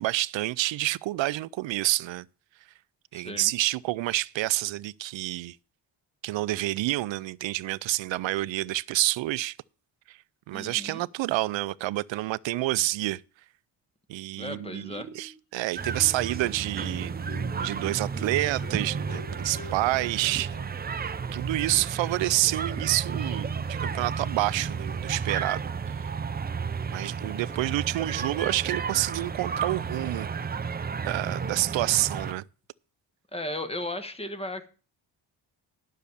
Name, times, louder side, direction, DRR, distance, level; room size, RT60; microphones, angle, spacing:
voice 1, 0.0-2.2 3.1-5.6 6.2-9.6 10.1-10.2 10.5-13.2 14.1-17.2 17.6-20.6 21.3-26.1 26.9-30.3 31.0-32.4, right 17 dB, 75° right, 0.5 m, -28 dB
voice 2, 3.1-3.5 10.5-11.0 14.4-15.1 33.3-34.7, left 1 dB, 15° left, 1.1 m, -35 dB
Marimba xylophone, 14.4-15.4 15.8-21.3, left 3 dB, 45° left, 4.4 m, -47 dB
sound 1, 15.8-32.3, right 5 dB, 20° right, 0.5 m, -32 dB
10.5 x 6.5 x 7.0 m
wide cardioid pair, 140°, 45 cm